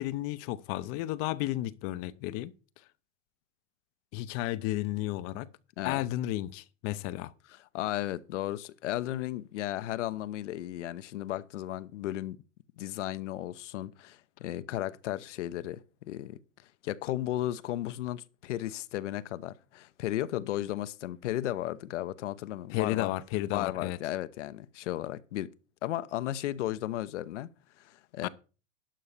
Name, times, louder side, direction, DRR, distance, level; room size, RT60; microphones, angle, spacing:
voice 1, 0.0-2.5 4.1-5.5 5.8-7.3 22.7-24.0 28.2-28.3, left 16 dB, 40° left, 0.7 m, -32 dB
voice 2, 7.5-12.4 12.8-16.4 16.8-23.1 23.5-25.5 25.8-27.5 27.8-28.3, left 14 dB, 70° left, 0.9 m, -35 dB
11.5 x 5.6 x 6.6 m
hypercardioid pair, 120°, 37 cm